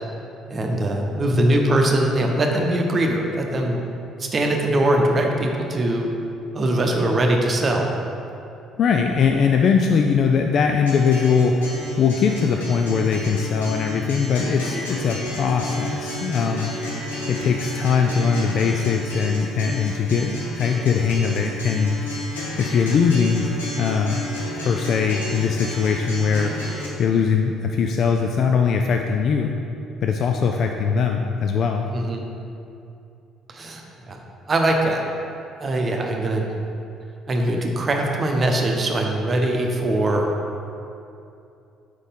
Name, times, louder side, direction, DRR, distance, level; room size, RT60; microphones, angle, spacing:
voice 1, 0.5-3.8 4.2-6.1 6.5-7.9 31.9-32.3 33.5-33.8 34.1-34.2 34.5-35.0 35.6-36.4 37.3-40.3, right 1 dB, 40° right, 1 dB, 0.8 m, -21 dB
voice 2, 8.8-11.6 12.0-16.7 17.3-22.0 22.6-23.4 23.8-24.2 24.6-26.6 27.0-29.5 30.0-31.9, left 6 dB, 55° left, 3 dB, 0.3 m, -21 dB
Acoustic guitar, 10.9-26.9, left 1 dB, 90° left, 0.9 m, -32 dB
4.8 x 4.2 x 5.2 m, 2.7 s
hypercardioid pair, 50°, 0 cm